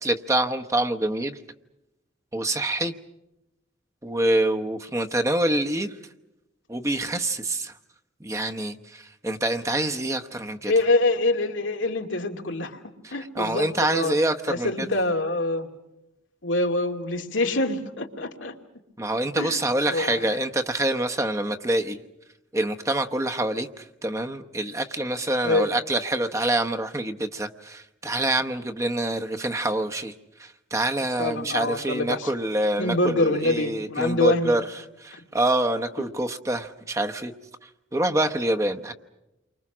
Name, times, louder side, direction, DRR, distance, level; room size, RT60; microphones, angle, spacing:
voice 1, 0.0-1.4 2.3-2.9 4.0-5.9 6.7-7.7 8.2-10.7 13.0-14.9 19.0-22.0 22.5-30.1 30.4-34.6 35.0-37.3 37.9-38.9, right 1 dB, 15° right, 5 dB, 0.9 m, -26 dB
voice 2, 10.7-12.8 13.1-14.2 14.5-15.7 16.4-18.6 19.4-19.6 19.9-20.4 25.4-25.7 31.2-32.3 32.8-34.6, left 2 dB, 90° left, 3 dB, 2.5 m, -25 dB
29.5 x 24.5 x 6.2 m, 0.93 s
head